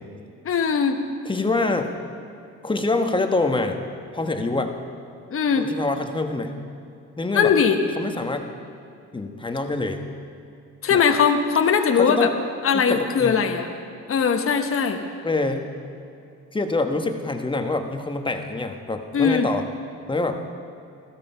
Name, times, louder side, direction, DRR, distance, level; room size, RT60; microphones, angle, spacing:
voice 1, 0.4-1.0 5.3-5.7 7.3-7.8 10.8-12.3 12.6-13.7 14.1-15.0 19.1-19.5, left 6 dB, 45° left, 5 dB, 1.1 m, -20 dB
voice 2, 1.2-1.9 2.6-3.8 4.1-4.7 5.6-6.5 7.2-7.5 8.0-8.5 9.1-10.0 10.9-11.0 11.9-12.3 12.7-13.4 15.2-15.6 16.5-19.6 20.1-20.4, left 2 dB, 15° left, 5 dB, 1.2 m, -25 dB
15.0 x 13.0 x 5.7 m, 2.5 s
cardioid pair, 90°, 30 cm